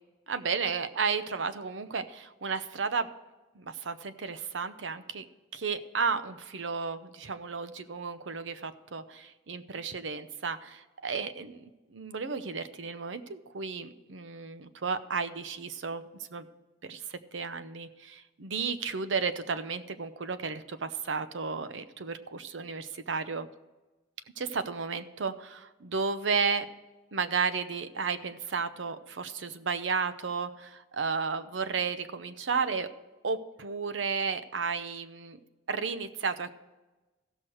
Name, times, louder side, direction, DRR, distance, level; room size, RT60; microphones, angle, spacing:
voice 1, 0.3-3.1 3.5-5.2 5.5-11.6 11.9-16.0 16.3-16.5 16.8-23.5 24.4-26.7 27.1-32.9 33.2-35.4 35.7-36.6, right 5 dB, 70° right, 11 dB, 0.7 m, -33 dB
15.5 x 6.3 x 4.5 m, 1.1 s
head